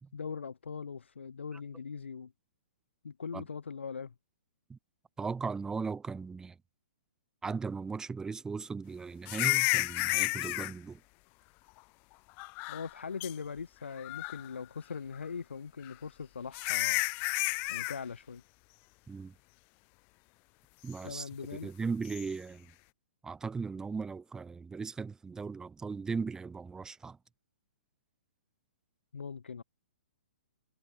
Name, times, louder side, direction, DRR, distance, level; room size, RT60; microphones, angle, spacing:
voice 1, 0.1-2.3 3.0-4.1 12.7-17.0 17.7-18.4 21.0-21.7 29.1-29.6, left 5 dB, 70° left, 2.1 m, -41 dB
voice 2, 5.2-6.6 7.4-11.0 19.1-19.3 20.8-22.7 23.2-27.2, right 5 dB, 10° right, 2.8 m, -38 dB
sound 1, 9.3-10.7 12.4-12.9 13.2-13.3 14.0-14.5 15.9-16.0 16.5-18.0 22.1-22.2, left 28 dB, 30° left, 0.4 m, -31 dB
figure-of-eight pair, 120°, 7 cm